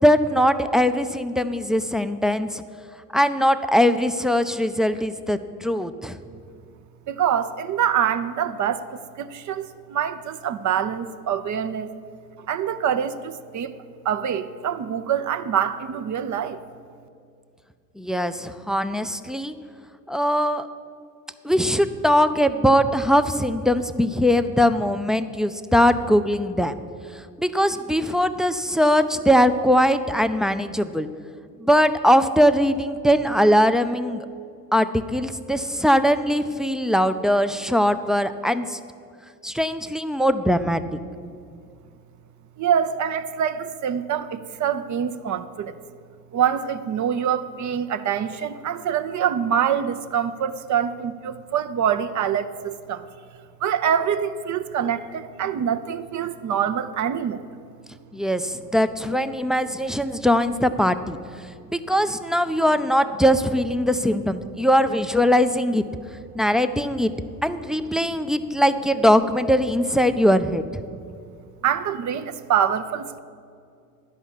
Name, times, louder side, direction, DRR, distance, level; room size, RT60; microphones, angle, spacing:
voice 1, 0.0-2.6 3.1-6.2 18.0-19.6 20.1-20.7 21.4-26.8 27.4-31.1 31.6-34.3 34.7-38.8 39.4-40.8 58.1-61.2 61.7-65.8 66.3-67.1 67.4-70.8, equal, ahead, 10 dB, 0.4 m, -21 dB
voice 2, 7.1-8.8 9.2-11.9 12.5-13.7 14.0-16.6 42.6-45.7 46.3-53.1 53.6-57.5 71.6-73.2, right 8 dB, 45° right, 10 dB, 0.7 m, -25 dB
11.0 x 5.7 x 8.3 m, 2.3 s
hypercardioid pair, 65°, 43 cm